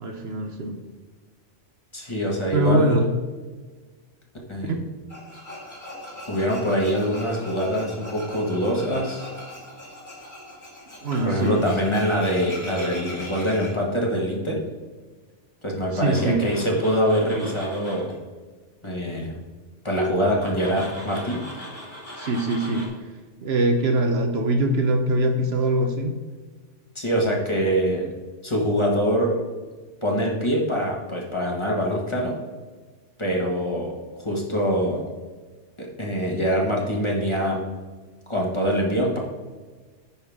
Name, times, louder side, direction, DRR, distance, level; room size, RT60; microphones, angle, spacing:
voice 1, 0.0-0.8 2.5-3.0 4.6-4.8 11.0-11.7 15.9-16.4 22.1-22.9 23.4-26.2, right 1 dB, 60° right, 5 dB, 1.0 m, -23 dB
voice 2, 1.9-3.1 4.5-4.7 6.3-9.3 11.2-14.6 15.6-18.1 18.8-19.3 19.8-21.4 26.9-28.1 28.4-29.4 30.0-32.3 33.2-33.9 34.2-35.0 35.8-37.6 38.3-39.2, equal, 25° left, -2 dB, 1.6 m, -24 dB
Tools, 5.1-13.7 15.9-18.1 20.3-22.9, left 1 dB, 40° left, 2.7 m, -39 dB
9.9 x 5.8 x 3.5 m, 1.4 s
omnidirectional pair, 1.2 m